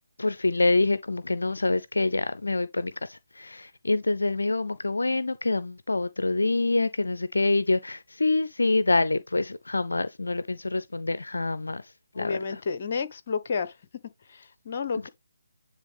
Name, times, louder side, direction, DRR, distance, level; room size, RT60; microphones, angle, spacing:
voice 1, 0.2-12.6, left 2 dB, 70° left, 0.5 m, -26 dB
voice 2, 12.1-13.8 14.3-15.1, left 5 dB, 40° left, 1.0 m, -31 dB
9.7 x 3.4 x 3.5 m
figure-of-eight pair, 145°, 0 cm